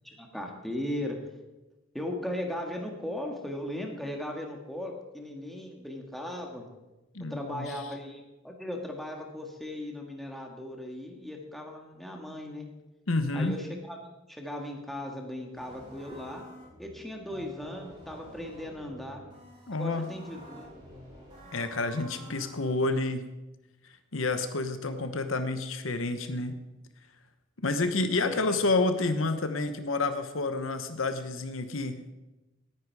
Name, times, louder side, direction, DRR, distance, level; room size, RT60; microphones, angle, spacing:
voice 1, 0.0-1.2 1.9-6.6 7.3-12.7 13.3-16.4 16.8-19.2 19.8-20.7 28.2-28.6, left 1 dB, ahead, 1 dB, 2.0 m, -37 dB
voice 2, 7.1-7.8 13.1-13.6 19.7-20.1 21.5-23.3 24.1-26.6 27.6-32.0, left 3 dB, 70° left, 9 dB, 1.0 m, -29 dB
sound 1, 15.5-22.9, right 1 dB, 25° right, 5.4 m, -49 dB
18.5 x 10.0 x 4.8 m, 1.1 s
head